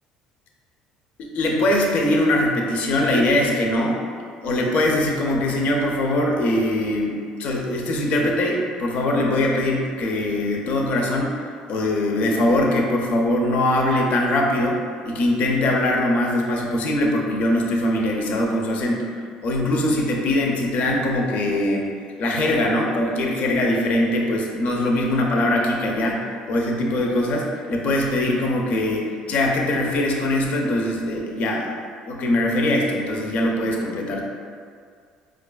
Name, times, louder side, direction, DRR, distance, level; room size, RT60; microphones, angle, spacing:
voice 1, 1.2-4.0 4.4-19.1 19.4-21.9 22.2-31.7 32.1-34.2, left 1 dB, 60° left, 0 dB, 0.5 m, -22 dB
4.6 x 2.4 x 2.2 m, 2.1 s
supercardioid pair, 75°, 3 cm